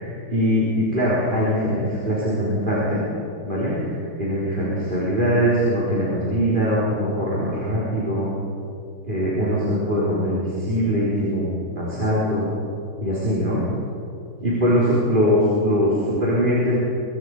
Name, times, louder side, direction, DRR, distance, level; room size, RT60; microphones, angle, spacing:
voice 1, 0.0-3.0 3.4-8.3 9.0-12.5 13.0-13.6 14.4-16.8, equal, 30° right, -7 dB, 4.3 m, -22 dB
24.5 x 23.5 x 4.9 m, 2.5 s
omnidirectional pair, 1.7 m